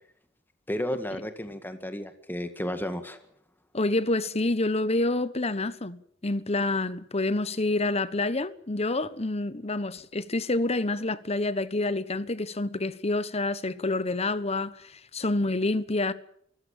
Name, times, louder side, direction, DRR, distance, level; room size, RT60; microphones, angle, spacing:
voice 1, 0.7-3.2, equal, 10° left, 1.8 m, -33 dB
voice 2, 3.7-16.1, left 2 dB, 35° left, 1.2 m, -28 dB
24.5 x 15.5 x 9.0 m
head